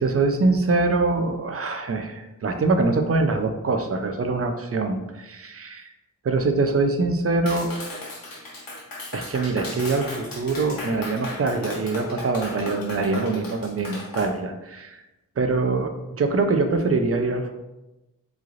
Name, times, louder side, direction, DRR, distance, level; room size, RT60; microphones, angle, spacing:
voice 1, 0.0-5.9 6.2-7.7 9.1-15.0 15.4-17.5, right 3 dB, 45° right, 6 dB, 0.5 m, -24 dB
Clapping, 7.5-14.3, left 2 dB, 80° left, 1.0 m, -36 dB
3.6 x 3.2 x 2.5 m, 0.99 s
cardioid pair, 55°, 34 cm